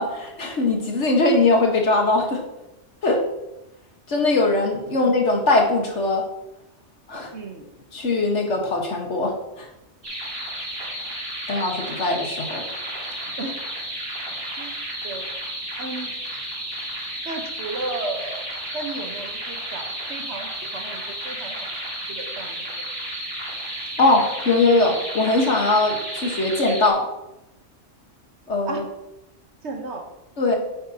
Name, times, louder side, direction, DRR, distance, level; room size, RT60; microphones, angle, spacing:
voice 1, 0.0-2.4 3.0-3.2 4.1-6.2 7.1-7.3 7.9-9.7 11.5-12.6 24.0-27.1 28.5-28.8 30.4-30.6, left 2 dB, 70° left, 1 dB, 1.9 m, -21 dB
voice 2, 7.3-7.6 13.4-13.5 14.6-14.7 15.0-15.3 15.8-16.4 17.2-18.4 18.7-21.5 22.1-22.6 28.7-28.8 29.6-30.0 30.5-30.6, right 3 dB, 65° right, 3 dB, 1.5 m, -34 dB
sound 1, 10.0-26.9, right 1 dB, 45° right, 2.7 m, -32 dB
9.0 x 8.9 x 2.9 m, 0.92 s
omnidirectional pair, 1.2 m